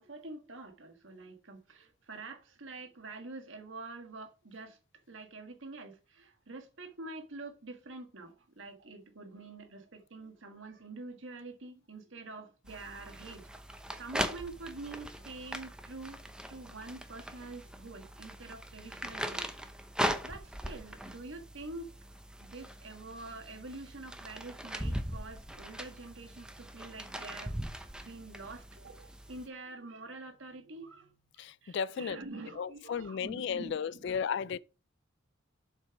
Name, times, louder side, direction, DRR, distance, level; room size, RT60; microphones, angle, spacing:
voice 1, 0.0-4.8 5.1-16.2 16.5-19.5 20.2-21.9 22.4-27.6 28.0-34.2, right 3 dB, 70° right, 1.5 m, -46 dB
sound 1, 12.7-29.5, equal, 5° right, 0.7 m, -40 dB
voice 2, 31.4-32.2 32.6-34.6, left 7 dB, 60° left, 0.3 m, -34 dB
7.4 x 5.2 x 4.8 m
head